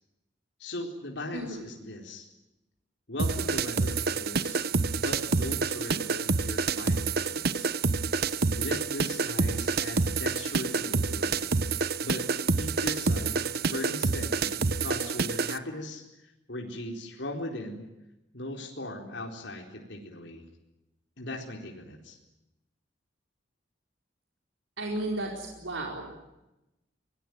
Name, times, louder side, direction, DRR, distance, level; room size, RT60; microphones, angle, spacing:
voice 1, 0.6-2.3 3.1-4.7 5.0-7.7 8.6-11.4 12.0-17.8 18.3-20.4 21.2-22.2, left 1 dB, 65° left, 1 dB, 4.2 m, -39 dB
voice 2, 1.3-1.6 24.8-26.2, right 1 dB, 90° right, 0 dB, 4.6 m, -34 dB
sound 1, 3.2-15.6, right 4 dB, 55° right, 1.0 m, -28 dB
24.5 x 20.5 x 9.5 m, 0.94 s
head